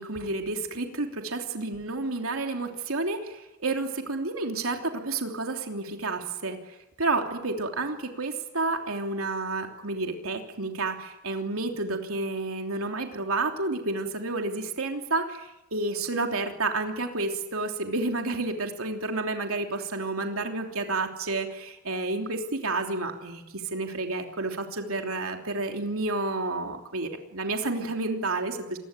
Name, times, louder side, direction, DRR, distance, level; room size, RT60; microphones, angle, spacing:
voice 1, 0.0-28.8, right 3 dB, 85° right, 3 dB, 3.2 m, -30 dB
27.0 x 21.0 x 9.1 m, 0.93 s
head